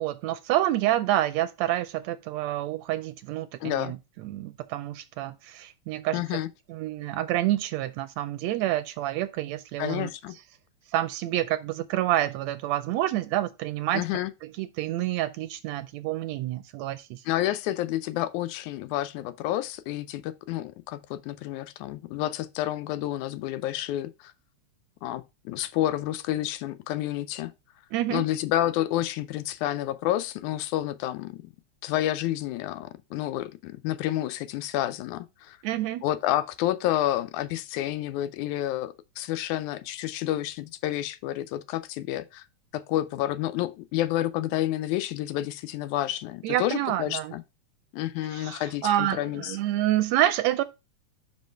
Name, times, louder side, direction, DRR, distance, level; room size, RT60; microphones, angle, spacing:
voice 1, 0.0-6.4 6.7-10.1 10.9-14.0 14.6-17.2 27.9-28.2 35.6-36.0 46.4-47.3 48.3-50.6, right 13 dB, 80° right, 1.7 m, -28 dB
voice 2, 3.6-3.9 6.1-6.5 9.8-10.4 13.9-14.3 17.3-24.3 25.0-27.5 28.1-31.4 31.8-35.6 36.0-42.5 42.7-47.4 47.9-49.6, left 13 dB, 90° left, 2.1 m, -29 dB
5.4 x 5.3 x 4.5 m
omnidirectional pair, 3.4 m